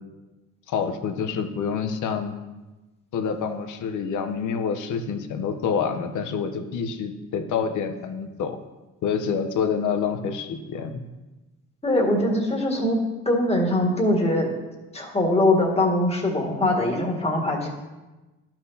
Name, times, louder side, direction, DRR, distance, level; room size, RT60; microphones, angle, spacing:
voice 1, 0.7-2.4 3.1-8.6 9.0-11.0, left 6 dB, 80° left, 7 dB, 0.9 m, -27 dB
voice 2, 11.8-13.0 13.3-14.5 14.9-17.7, left 1 dB, 20° left, -1 dB, 1.8 m, -22 dB
12.0 x 6.0 x 2.8 m, 1.1 s
cardioid pair, 90°, 30 cm